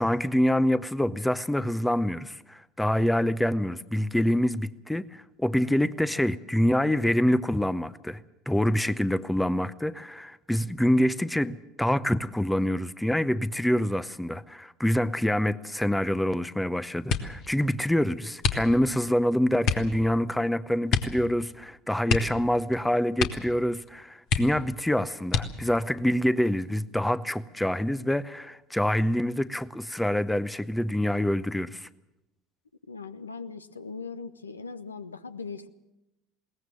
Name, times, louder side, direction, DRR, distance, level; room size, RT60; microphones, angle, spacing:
voice 1, 0.0-8.2 8.5-31.9, left 1 dB, 5° left, 0.7 m, -26 dB
sound 1, 17.0-17.5 18.4-19.0 19.6-19.9 20.9-21.2 21.5-21.6 22.0-22.8 23.1-23.6 23.9-24.0 24.3-24.8 25.3-25.8 26.5-27.1 27.5-27.9, left 6 dB, 50° left, 1.6 m, -28 dB
voice 2, 32.9-35.7, left 4 dB, 85° left, 0.8 m, -39 dB
21.5 x 18.5 x 7.5 m
figure-of-eight pair, 65°, 0 cm